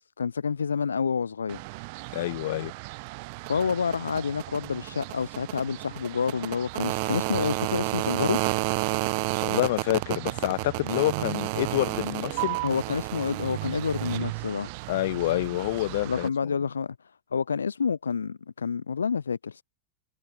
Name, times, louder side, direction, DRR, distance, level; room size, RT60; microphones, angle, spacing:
voice 1, 0.0-1.6 3.5-8.4 12.6-14.7 16.0-17.0 17.3-19.6, left 6 dB, 70° left, 0.5 m, -28 dB
sound 1, 1.5-16.3, right 29 dB, 45° right, 0.9 m, -32 dB
voice 2, 2.1-2.7 9.4-12.6 14.9-16.3, left 16 dB, 55° left, 0.9 m, -27 dB
figure-of-eight pair, 90°, 0 cm